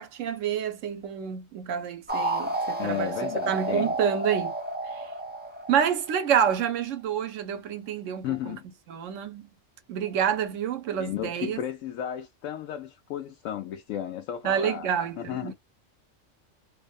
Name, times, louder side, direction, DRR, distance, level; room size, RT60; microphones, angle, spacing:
voice 1, 0.0-4.6 4.9-5.0 5.7-8.6 8.9-9.5 9.9-11.6 14.4-15.5, right 8 dB, 80° right, 1.0 m, -28 dB
sound 1, 2.1-6.6, right 1 dB, 10° right, 0.5 m, -31 dB
voice 2, 2.8-3.9 8.2-8.7 11.0-14.9 15.2-15.5, left 10 dB, 90° left, 1.0 m, -33 dB
2.7 x 2.0 x 2.3 m
omnidirectional pair, 1.3 m